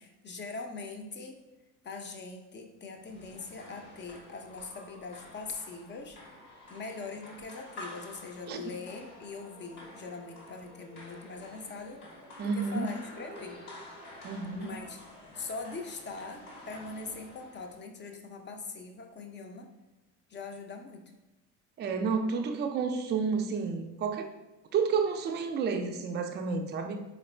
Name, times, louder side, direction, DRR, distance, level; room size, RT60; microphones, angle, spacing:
voice 1, 0.0-1.4 1.8-6.2 6.7-12.1 12.4-13.6 14.5-15.0 15.3-19.7 20.3-21.1, left 4 dB, 25° left, 4 dB, 0.5 m, -42 dB
sound 1, 3.0-17.8, left 1 dB, 85° left, 1.4 m, -49 dB
voice 2, 12.4-12.9 14.2-14.7 21.8-24.3 24.7-27.0, right 5 dB, 25° right, 5 dB, 0.4 m, -30 dB
4.2 x 2.5 x 3.2 m, 1.0 s
hypercardioid pair, 65°, 44 cm